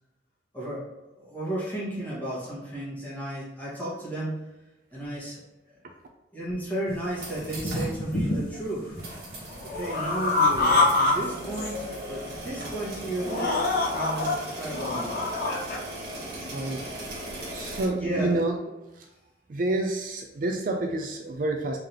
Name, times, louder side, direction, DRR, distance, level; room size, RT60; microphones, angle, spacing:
voice 1, 0.5-0.9 1.1-4.4 4.9-5.4 5.7-5.8 6.3-9.0 9.6-15.1 18.0-18.3, right 1 dB, 10° left, -8 dB, 1.5 m, -34 dB
sound 1, 6.9-7.0 7.4-8.6 8.9-11.1 11.4-12.0 12.5-12.6 13.2-14.3 14.7-15.8, left 3 dB, 55° left, 1.0 m, -26 dB
chainsaw start and idle, 7.1-7.9 8.3-8.4 9.0-17.8, right 1 dB, 65° right, 1.3 m, -38 dB
voice 2, 16.4-16.9 17.5-18.6 18.9-19.1 19.5-21.8, right 2 dB, 50° right, 3 dB, 0.4 m, -28 dB
3.7 x 3.4 x 2.9 m, 1.0 s
head